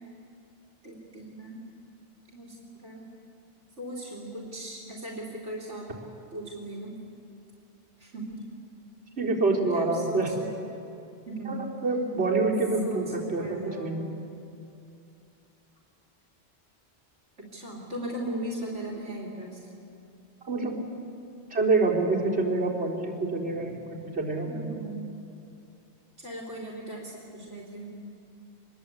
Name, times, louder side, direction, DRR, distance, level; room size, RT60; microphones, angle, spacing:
voice 1, 0.8-1.6 2.3-3.0 3.8-5.9 6.3-7.0 8.0-8.5 9.7-10.6 11.3-11.6 12.8-13.9 17.4-19.6 24.4-25.1 26.2-28.0, right 1 dB, 80° right, -2 dB, 3.7 m, -38 dB
voice 2, 9.2-10.3 11.5-14.0 20.5-20.7 21.5-24.8, right 3 dB, 65° right, -5 dB, 4.4 m, -27 dB
25.5 x 21.5 x 8.4 m, 2.6 s
omnidirectional pair, 1.2 m